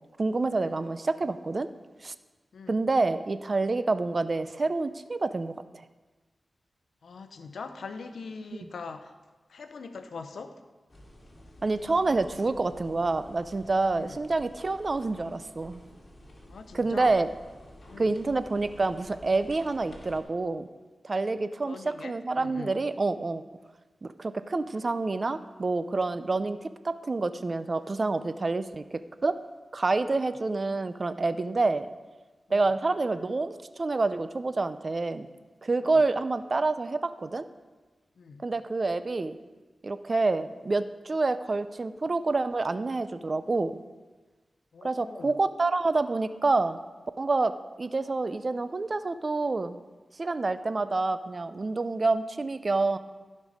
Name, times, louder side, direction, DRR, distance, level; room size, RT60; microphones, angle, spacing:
voice 1, 0.2-1.7 2.0-2.1 2.7-5.5 11.6-15.8 16.7-17.3 18.0-20.7 21.0-23.4 24.0-26.6 26.8-28.8 29.2-29.3 29.7-31.9 32.5-35.3 35.6-37.4 38.4-39.4 39.8-43.8 44.8-46.8 47.2-47.5 47.8-49.8 50.2-53.0, right 3 dB, 45° right, 12 dB, 0.5 m, -27 dB
voice 2, 7.0-9.1 9.5-10.6 13.9-14.2 16.5-17.2 17.9-18.1 21.6-22.8 32.5-32.6 35.9-36.0 38.2-38.5 44.7-45.3, left 4 dB, 85° left, 9 dB, 0.7 m, -42 dB
sound 1, 10.9-20.2, equal, 40° left, 2.5 m, -51 dB
15.5 x 5.4 x 4.9 m, 1.3 s
cardioid pair, 65°, 0 cm